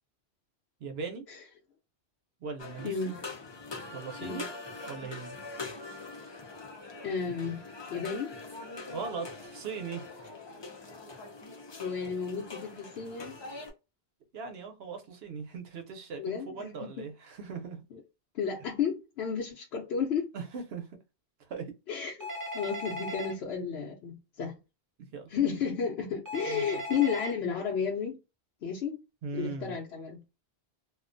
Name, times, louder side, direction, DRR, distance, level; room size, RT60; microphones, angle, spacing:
voice 1, 0.8-1.2 2.4-3.1 3.9-4.5 4.9-5.4 8.9-10.3 14.3-17.8 20.3-20.9 21.4-21.7 25.1-25.3 26.5-26.8 29.2-29.8, right 5 dB, 75° right, 0.9 m, -39 dB
sound 1, 2.6-13.7, left 3 dB, 35° left, 0.5 m, -43 dB
voice 2, 2.8-3.2 4.2-4.4 7.0-7.6 7.9-8.3 11.8-13.4 16.2-16.7 17.0-17.1 18.3-20.3 21.9-22.3 22.5-24.6 25.3-28.2 28.6-29.0 29.3-30.2, left 6 dB, 75° left, 0.8 m, -32 dB
Telephone, 22.2-23.3 26.3-27.3, left 1 dB, 20° right, 0.6 m, -37 dB
2.4 x 2.1 x 2.5 m
omnidirectional pair, 1.1 m